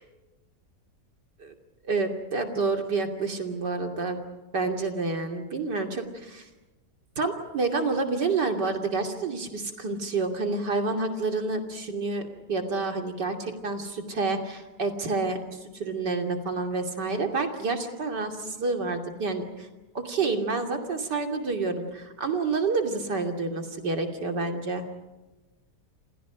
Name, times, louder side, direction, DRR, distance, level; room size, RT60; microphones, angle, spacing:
voice 1, 1.8-4.2 4.5-6.5 7.2-15.4 15.7-19.7 19.9-24.9, right 3 dB, 75° right, 4 dB, 3.4 m, -29 dB
29.0 x 28.0 x 5.1 m, 1.1 s
omnidirectional pair, 1.9 m